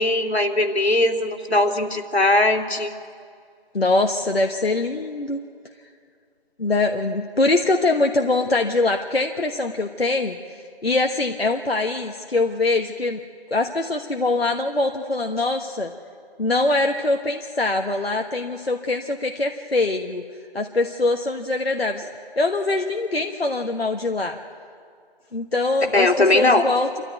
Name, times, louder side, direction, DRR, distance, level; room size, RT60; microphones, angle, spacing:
voice 1, 0.0-2.9 25.9-26.6, left 2 dB, 90° left, 3 dB, 2.7 m, -19 dB
voice 2, 3.7-5.4 6.6-10.4 10.8-13.2 13.5-15.9 16.4-20.2 20.5-22.1 22.4-24.4 25.3-26.9, left 2 dB, 70° left, 4 dB, 1.3 m, -23 dB
27.5 x 14.0 x 9.4 m, 2.2 s
figure-of-eight pair, 175°, 31 cm